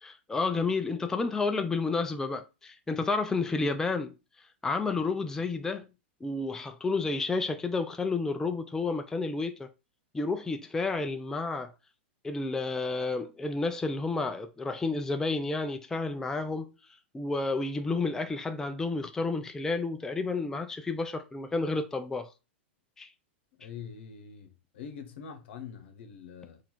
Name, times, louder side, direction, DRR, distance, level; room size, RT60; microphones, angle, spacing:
voice 1, 0.0-4.1 4.6-5.9 6.2-9.7 10.1-11.7 12.2-16.8 17.1-22.3 23.0-23.1, left 3 dB, 10° left, 0.4 m, -31 dB
voice 2, 23.6-26.6, left 7 dB, 70° left, 1.0 m, -44 dB
3.9 x 2.6 x 4.5 m
hypercardioid pair, 120°, 6 cm